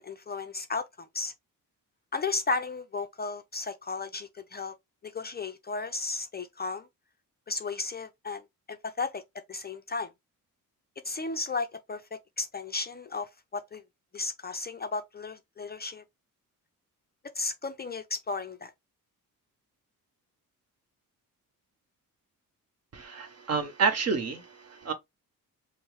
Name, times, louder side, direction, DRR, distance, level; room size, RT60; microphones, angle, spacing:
voice 1, 0.0-1.3 2.1-4.7 5.0-6.9 7.5-9.2 9.5-10.1 11.0-13.8 14.1-16.0 17.4-18.7, left 3 dB, 30° left, 0.4 m, -34 dB
voice 2, 22.9-24.9, right 5 dB, 45° right, 1.0 m, -29 dB
5.3 x 2.1 x 3.1 m
wide cardioid pair, 130°, 34 cm